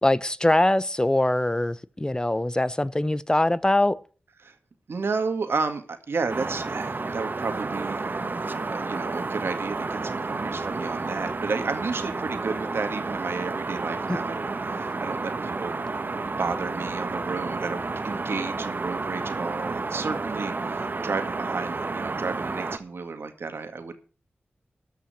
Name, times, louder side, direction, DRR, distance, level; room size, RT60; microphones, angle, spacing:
voice 1, 0.0-4.0 14.1-14.2, left 1 dB, 20° left, 0.7 m, -23 dB
voice 2, 4.9-8.2 8.7-15.8 16.4-24.0, right 4 dB, 80° right, 2.0 m, -32 dB
sound 1, 6.3-22.8, right 3 dB, 55° right, 1.2 m, -31 dB
13.5 x 5.7 x 8.4 m
cardioid pair, 45°, 4 cm